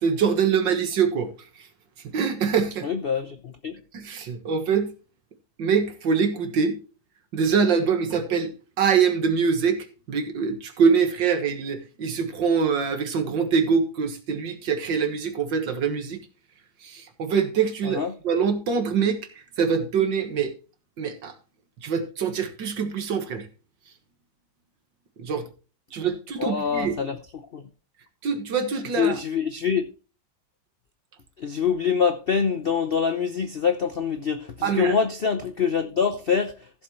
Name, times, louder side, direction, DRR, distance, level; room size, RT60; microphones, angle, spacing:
voice 1, 0.0-1.3 2.1-2.9 3.9-4.9 5.6-6.8 7.3-8.5 8.8-16.2 16.8-18.0 18.2-19.2 19.6-20.5 21.0-21.3 21.8-23.5 25.2-25.5 25.9-26.9 28.2-29.2 34.6-34.9, right 6 dB, 75° right, 2.2 m, -24 dB
voice 2, 2.8-3.7 17.8-18.1 26.4-27.2 27.5-27.6 29.0-29.9 31.4-36.5, left 6 dB, 65° left, 0.5 m, -25 dB
15.0 x 7.3 x 3.1 m
omnidirectional pair, 2.0 m